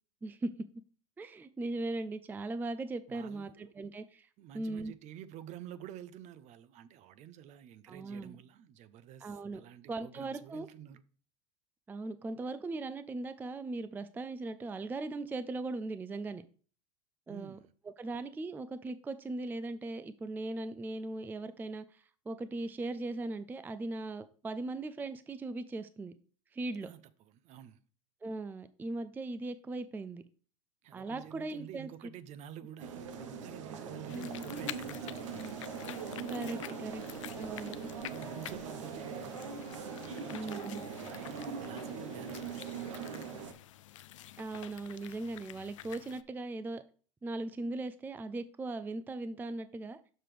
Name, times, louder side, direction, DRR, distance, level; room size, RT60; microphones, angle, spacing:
voice 1, 1.2-4.3 4.5-4.9 7.9-8.4 9.2-9.6 9.9-10.7 11.9-16.4 17.3-17.6 18.0-26.1 26.5-26.9 28.2-30.2 30.9-31.9 34.1-34.5 36.3-37.0 37.4-37.9 40.3-40.8 44.4-46.8 47.2-50.0, right 2 dB, 10° right, 0.4 m, -39 dB
voice 2, 3.1-3.9 4.4-11.0 17.3-17.7 26.8-27.8 30.8-35.5 38.0-43.4, right 10 dB, 50° right, 0.7 m, -50 dB
sound 1, 32.8-43.5, right 5 dB, 85° right, 0.9 m, -41 dB
sound 2, 34.1-46.2, left 13 dB, 90° left, 0.4 m, -49 dB
6.6 x 5.9 x 3.3 m
hypercardioid pair, 100°, 16 cm